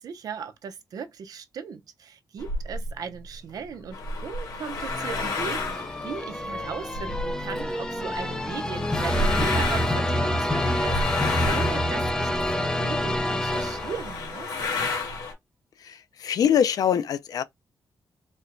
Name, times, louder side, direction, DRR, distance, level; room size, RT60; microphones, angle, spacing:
voice 1, 0.0-4.0 4.2-14.5, right 6 dB, 60° right, 0.6 m, -38 dB
sound 1, 2.4-2.9 3.7-7.6 8.1-12.7 13.1-13.2 13.4-15.3, left 2 dB, 80° left, 1.5 m, -31 dB
sound 2, 4.8-14.3, left 1 dB, 10° left, 0.5 m, -27 dB
voice 2, 15.8-17.4, left 9 dB, 60° left, 0.4 m, -24 dB
4.2 x 2.1 x 2.5 m
wide cardioid pair, 135°, 7 cm